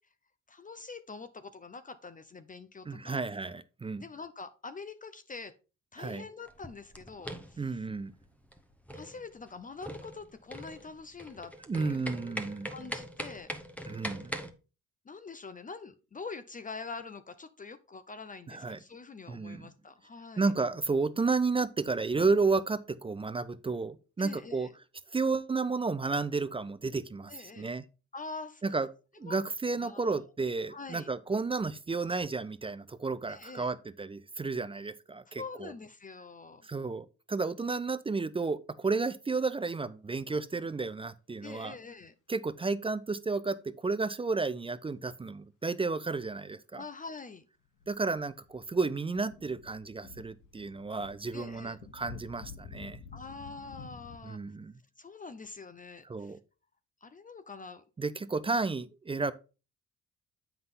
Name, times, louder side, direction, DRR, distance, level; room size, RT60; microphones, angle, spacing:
voice 1, 0.5-3.2 4.0-5.5 5.9-7.8 8.9-13.5 15.1-20.5 24.2-24.7 27.3-27.7 28.1-28.6 29.2-29.4 29.7-30.2 30.7-31.1 33.3-33.7 35.4-36.7 41.4-42.1 46.8-47.5 51.3-51.8 53.1-54.4 55.0-56.3 57.0-57.8, left 4 dB, 25° left, 0.6 m, -45 dB
voice 2, 2.9-4.0 6.0-6.2 7.6-8.1 11.7-12.7 13.9-14.3 18.5-18.8 19.3-19.7 20.4-24.7 25.1-27.8 28.6-28.9 29.2-35.7 36.6-41.8 42.3-46.8 47.9-53.0 54.2-54.7 56.1-56.4 58.0-59.3, right 4 dB, 20° right, 0.4 m, -32 dB
sound 1, 6.5-14.5, equal, 5° left, 0.9 m, -42 dB
sound 2, 47.7-54.2, left 6 dB, 85° left, 1.1 m, -50 dB
7.7 x 5.7 x 3.7 m
cardioid pair, 90°, 30 cm